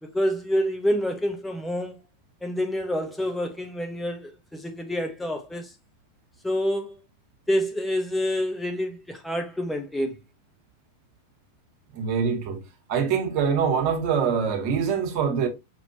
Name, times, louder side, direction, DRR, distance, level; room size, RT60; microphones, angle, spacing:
voice 1, 0.0-2.0 2.4-5.7 6.4-7.0 7.5-10.2, equal, 5° left, 0.6 m, -27 dB
voice 2, 11.9-12.6 12.9-15.5, right 6 dB, 45° right, 1.3 m, -24 dB
5.4 x 2.8 x 2.8 m
figure-of-eight pair, 90°, 0 cm